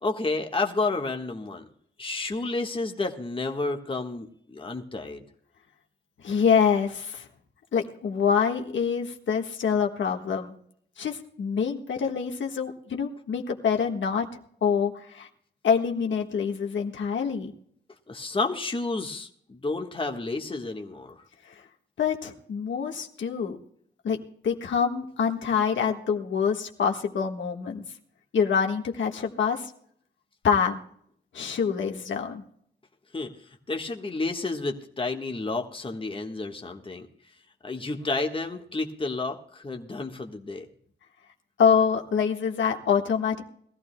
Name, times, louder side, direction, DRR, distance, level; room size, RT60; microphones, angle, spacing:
voice 1, 0.0-1.7 2.0-5.2 18.1-21.2 33.1-33.3 33.7-37.1 37.6-40.6, left 3 dB, 30° left, 3 dB, 1.4 m, -31 dB
voice 2, 6.2-7.3 7.7-10.5 11.0-14.3 14.6-15.3 15.6-17.5 22.0-23.6 24.0-24.2 24.4-27.8 28.3-29.7 30.4-30.8 31.3-32.4 41.6-43.4, left 6 dB, 85° left, 2 dB, 1.5 m, -25 dB
21.5 x 14.5 x 2.2 m, 0.65 s
wide cardioid pair, 95°, 19 cm